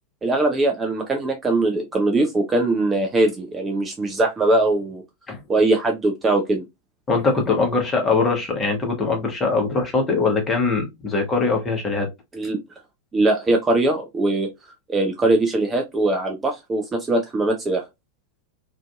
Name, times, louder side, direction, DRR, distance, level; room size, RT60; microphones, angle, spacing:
voice 1, 0.2-5.0 5.5-6.6 12.3-12.6 13.1-14.5 14.9-17.8, right 2 dB, 15° right, 0.4 m, -21 dB
voice 2, 7.1-12.1, left 4 dB, 20° left, 0.9 m, -22 dB
2.5 x 2.5 x 2.2 m
figure-of-eight pair, 90°, 0 cm